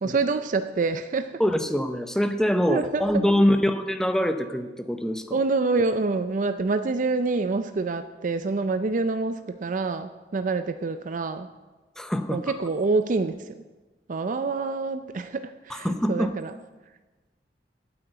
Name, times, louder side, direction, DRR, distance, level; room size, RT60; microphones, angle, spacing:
voice 1, 0.0-1.4 2.7-3.0 5.3-11.5 12.3-13.6 14.1-16.5, right 3 dB, 45° right, 9 dB, 0.4 m, -26 dB
voice 2, 1.4-5.4 12.0-12.5 15.7-16.3, equal, 5° left, 7 dB, 0.7 m, -24 dB
8.8 x 8.3 x 7.9 m, 1.2 s
head